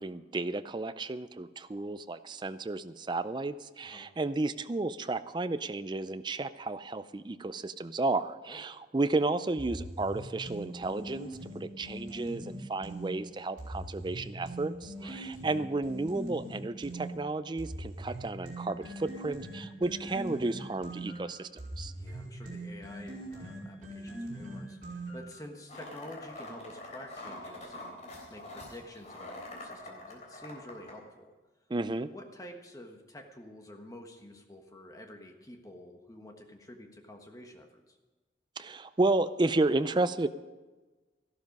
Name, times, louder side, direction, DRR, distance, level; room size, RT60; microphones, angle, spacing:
voice 1, 0.0-21.5 21.8-21.9 31.7-32.1 38.6-40.3, right 2 dB, 25° right, 13 dB, 0.4 m, -32 dB
sound 1, 9.6-13.1 13.6-17.1 17.6-25.4, right 1 dB, 45° right, 4.9 m, -41 dB
voice 2, 14.9-15.4 21.9-28.0 28.3-31.3 32.0-38.0, left 1 dB, 20° left, 3 dB, 1.4 m, -49 dB
sound 2, 25.7-30.9, left 2 dB, 40° left, 3.5 m, -45 dB
14.0 x 12.0 x 5.3 m, 1.2 s
head